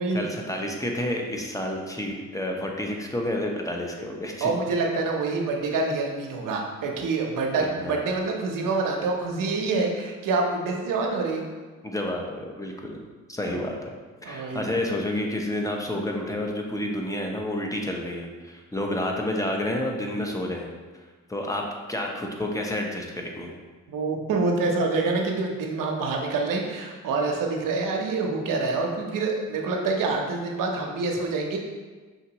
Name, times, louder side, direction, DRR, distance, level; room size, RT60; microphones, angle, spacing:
voice 1, 0.1-4.5 7.6-8.0 11.8-13.0 13.3-13.9 14.2-20.7 21.3-21.6 21.9-23.5, left 1 dB, 10° left, 0 dB, 0.8 m, -30 dB
voice 2, 4.4-11.4 13.5-13.7 14.2-14.7 23.9-31.6, right 3 dB, 80° right, 1 dB, 0.8 m, -26 dB
5.6 x 2.9 x 2.8 m, 1.4 s
cardioid pair, 65°, 32 cm